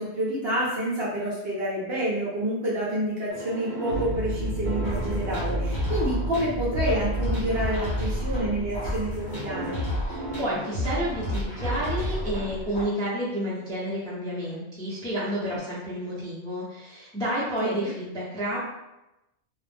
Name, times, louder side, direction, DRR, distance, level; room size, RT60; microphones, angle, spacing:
voice 1, 0.0-9.8 17.6-17.9, right 1 dB, 55° right, -6 dB, 0.8 m, -28 dB
sound 1, 3.3-6.7 7.4-7.9 9.3-13.4 15.5-15.6, right 1 dB, 75° right, 0.4 m, -39 dB
sound 2, 3.9-9.1, right 1 dB, 60° left, 0.9 m, -31 dB
sound 3, 4.8-12.8, left 1 dB, 40° left, 1.0 m, -31 dB
voice 2, 10.0-18.6, equal, 5° left, -9 dB, 0.5 m, -30 dB
2.4 x 2.0 x 3.3 m, 0.94 s
omnidirectional pair, 1.4 m